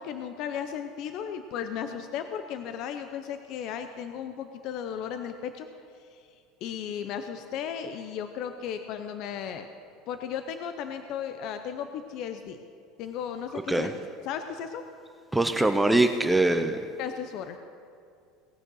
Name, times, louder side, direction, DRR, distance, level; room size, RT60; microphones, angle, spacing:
voice 1, 0.0-5.7 6.0-6.2 6.6-9.7 10.1-12.6 13.0-13.9 14.2-14.8 17.0-17.6, left 8 dB, 50° left, 8 dB, 0.6 m, -35 dB
voice 2, 15.3-16.8, right 2 dB, 5° right, 8 dB, 0.6 m, -23 dB
18.5 x 6.4 x 6.3 m, 2.3 s
supercardioid pair, 145°, 0 cm